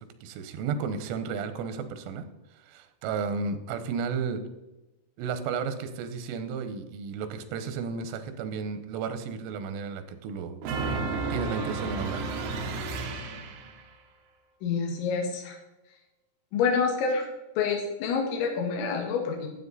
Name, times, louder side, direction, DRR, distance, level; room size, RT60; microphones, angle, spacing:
voice 1, 0.2-2.3 2.7-4.4 5.2-10.6 11.3-12.5, right 5 dB, 90° right, 9 dB, 3.5 m, -33 dB
sound 1, 10.6-13.8, right 3 dB, 75° right, 2.0 m, -32 dB
voice 2, 14.6-15.6 16.5-17.2 17.6-19.5, left 5 dB, 75° left, 0 dB, 4.0 m, -27 dB
12.5 x 8.0 x 4.1 m, 1.0 s
omnidirectional pair, 5.6 m